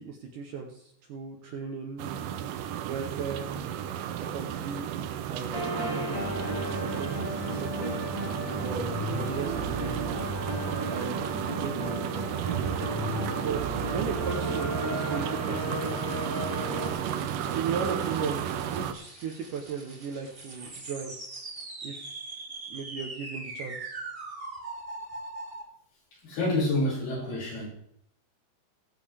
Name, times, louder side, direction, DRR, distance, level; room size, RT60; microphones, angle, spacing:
voice 1, 0.0-2.1 2.9-3.8 4.3-6.3 6.8-7.9 8.6-10.1 10.9-12.3 13.4-13.7 13.9-15.9 17.5-21.1 21.8-22.2 22.7-24.0, right 6 dB, 65° right, 2 dB, 2.2 m, -37 dB
sound 1, 2.0-18.9, right 9 dB, 85° right, 1.9 m, -33 dB
sound 2, 5.5-16.9, equal, 5° right, 2.2 m, -34 dB
sound 3, 15.8-25.6, right 2 dB, 25° right, 2.4 m, -42 dB
voice 2, 26.1-27.7, left 1 dB, 70° left, -6 dB, 8.1 m, -28 dB
20.0 x 7.8 x 3.4 m, 0.70 s
omnidirectional pair, 4.8 m